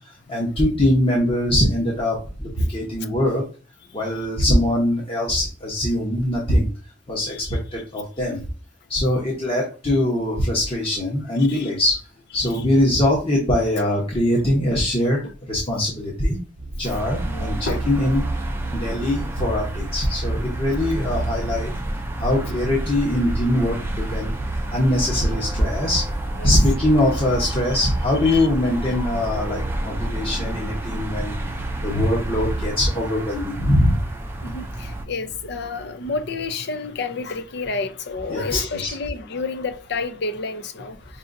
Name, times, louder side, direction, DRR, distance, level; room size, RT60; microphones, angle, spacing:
voice 1, 0.1-3.4 3.9-6.7 7.1-7.3 7.7-8.4 8.9-12.0 12.3-16.4 16.8-18.2 18.7-21.7 22.2-26.0 26.4-34.0 38.3-38.9, left 1 dB, 30° left, 1.0 m, -22 dB
voice 2, 7.2-7.6 11.4-11.7 15.2-15.3 17.3-17.8 18.1-18.2 25.3-25.5 26.4-26.5 28.2-28.5 34.4-41.0, left 4 dB, 60° left, 0.6 m, -30 dB
sound 1, 16.6-32.7, right 1 dB, 85° right, 0.7 m, -31 dB
sound 2, 16.8-35.1, right 1 dB, 10° right, 0.5 m, -32 dB
5.4 x 2.7 x 2.6 m
head